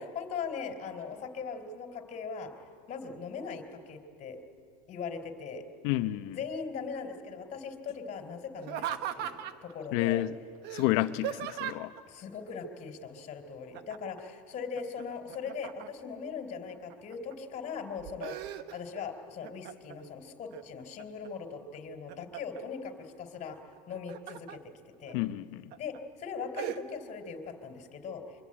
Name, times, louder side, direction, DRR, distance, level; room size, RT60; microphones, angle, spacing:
voice 1, 0.0-2.5 2.9-4.4 4.9-5.6 6.3-10.2 12.1-22.9 23.2-23.6 23.9-24.6 25.0-25.2 25.8-28.2, left 5 dB, 35° left, 3.7 m, -40 dB
voice 2, 5.8-6.4 9.9-10.3 10.7-11.9 25.1-25.7, left 16 dB, 60° left, 1.0 m, -30 dB
Laughter, 8.6-9.7 10.6-12.0 13.7-14.2 14.5-16.1 16.7-17.3 17.8-19.0 19.4-20.0 20.5-21.3 21.7-22.6 23.8-24.6 25.1-25.2 25.7-26.0 26.5-26.8, right 11 dB, 50° right, 1.2 m, -39 dB
24.0 x 23.0 x 8.9 m
supercardioid pair, 120°, 21 cm